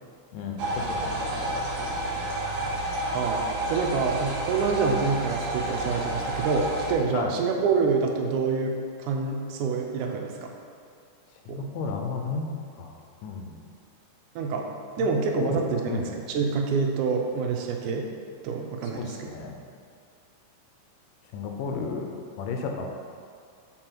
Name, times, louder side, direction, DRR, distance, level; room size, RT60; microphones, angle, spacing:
voice 1, 0.3-2.2 7.1-7.4 11.5-12.5 12.8-13.6 15.0-15.1 15.4-16.0 18.9-19.6 21.3-22.9, left 4 dB, 90° left, 3 dB, 2.3 m, -34 dB
sound 1, 0.6-6.9, right 1 dB, 60° right, 1.6 m, -30 dB
voice 2, 3.1-10.5 11.5-11.6 14.4-14.7 15.0-18.1 18.4-19.3, right 4 dB, 80° right, 2 dB, 2.1 m, -27 dB
7.6 x 4.6 x 4.5 m, 2.3 s
omnidirectional pair, 3.6 m